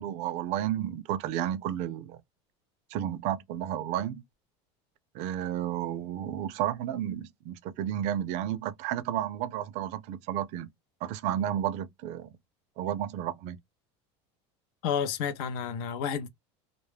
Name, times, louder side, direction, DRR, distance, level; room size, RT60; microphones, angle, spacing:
voice 1, 0.0-2.2 2.9-4.2 5.1-10.7 11.0-12.3 12.8-13.6, right 11 dB, 50° right, 0.4 m, -32 dB
voice 2, 14.8-16.3, left 8 dB, 65° left, 0.6 m, -30 dB
2.2 x 2.0 x 3.2 m
supercardioid pair, 145°, 15 cm